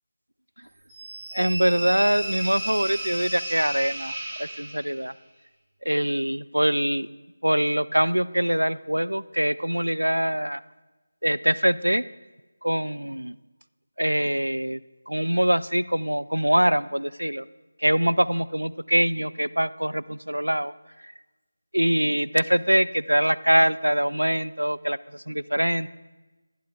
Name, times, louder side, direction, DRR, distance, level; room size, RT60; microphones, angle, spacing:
sound 1, 0.9-5.1, right 1 dB, 20° right, 1.4 m, -33 dB
voice 1, 1.3-5.1 5.9-7.1 7.4-10.6 11.2-12.0 12.6-13.4 14.0-14.8 15.1-17.4 17.8-20.7 21.0-21.1 21.7-25.9, equal, 80° right, 15 dB, 0.4 m, -23 dB
11.0 x 10.5 x 4.8 m, 1.1 s
figure-of-eight pair, 160°, 0 cm